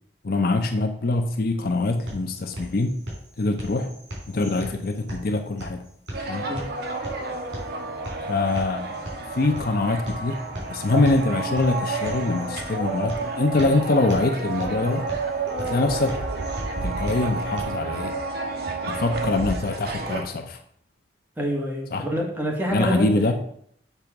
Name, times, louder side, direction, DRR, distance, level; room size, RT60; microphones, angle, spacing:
voice 1, 0.2-3.0 3.4-3.9 4.3-5.8 6.3-6.5 8.3-8.9 9.3-10.4 10.7-15.1 15.6-16.2 16.8-18.1 18.8-20.6 21.9-22.0 22.7-23.3, left 2 dB, 55° left, 6 dB, 0.6 m, -24 dB
sound 1, 1.6-17.6, equal, 80° right, 3.3 m, -39 dB
sound 2, 6.1-20.2, right 3 dB, 55° right, 1.0 m, -30 dB
voice 2, 21.4-23.3, equal, 10° right, -1 dB, 1.4 m, -27 dB
6.8 x 3.5 x 5.8 m, 0.65 s
head